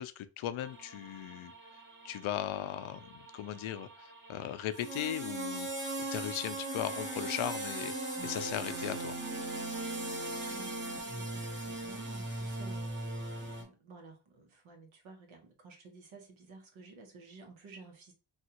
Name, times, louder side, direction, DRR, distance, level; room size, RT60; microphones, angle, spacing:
voice 1, 0.0-1.5 2.0-9.2, left 11 dB, 80° left, 0.5 m, -38 dB
knight cavaliere synthesizer Ritterburg, 0.6-13.6, right 2 dB, 25° right, 0.8 m, -39 dB
voice 2, 10.5-18.1, right 3 dB, 75° right, 1.1 m, -53 dB
3.4 x 2.4 x 2.8 m
wide cardioid pair, 120°, 48 cm